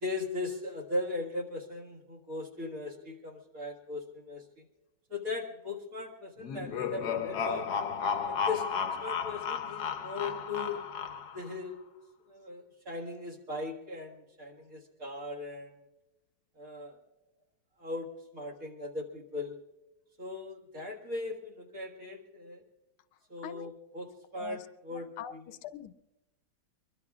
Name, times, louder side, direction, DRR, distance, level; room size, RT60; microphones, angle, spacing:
voice 1, 0.0-4.6 5.1-7.7 8.2-10.8 11.3-11.8 12.3-15.7 16.6-17.0 17.8-19.6 20.2-22.6 23.3-25.4, left 3 dB, 40° right, 1 dB, 2.1 m, -38 dB
sound 1, 6.4-11.5, left 6 dB, 60° left, 1.2 m, -33 dB
voice 2, 24.3-24.7 24.9-25.9, left 10 dB, 85° left, 12 dB, 1.5 m, -43 dB
23.5 x 22.5 x 2.4 m, 1.0 s
omnidirectional pair, 2.3 m